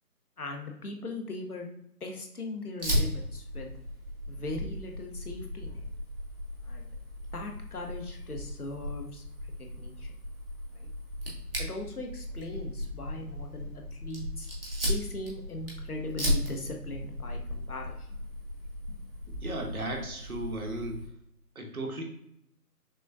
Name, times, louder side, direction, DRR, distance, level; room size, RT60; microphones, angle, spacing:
voice 1, 0.4-1.7 2.0-3.7 4.3-5.8 6.6-6.9 7.3-10.1 10.7-10.9 11.6-14.5 14.9-18.1 18.9-19.0, left 2 dB, 70° left, 2 dB, 1.0 m, -40 dB
Fire, 2.8-21.1, left 1 dB, 35° right, 1.0 m, -36 dB
voice 2, 19.4-21.0 21.5-22.0, right 1 dB, 65° right, 2 dB, 1.1 m, -35 dB
6.2 x 2.2 x 2.6 m, 0.76 s
figure-of-eight pair, 170°, 47 cm